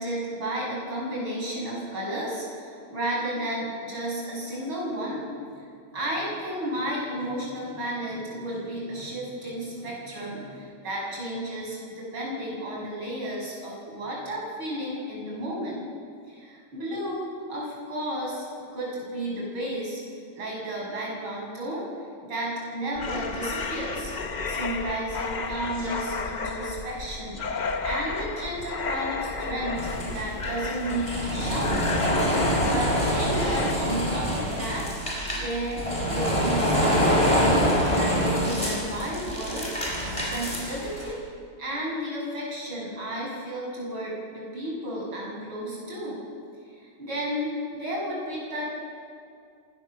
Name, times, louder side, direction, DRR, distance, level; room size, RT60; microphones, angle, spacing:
voice 1, 0.0-5.2 5.5-5.6 5.9-15.9 16.3-18.4 18.7-20.0 20.3-21.9 22.2-24.1 24.4-31.8 32.3-34.9 35.3-39.7 40.2-41.2 41.6-46.2 46.8-48.6, right 1 dB, 70° right, -4 dB, 7.8 m, -32 dB
Ghosts Voices, 22.9-33.7, left 4 dB, 85° left, 0.4 m, -33 dB
sound 1, 29.8-41.1, equal, 15° left, 5.7 m, -25 dB
26.5 x 18.5 x 6.9 m, 2.3 s
omnidirectional pair, 2.3 m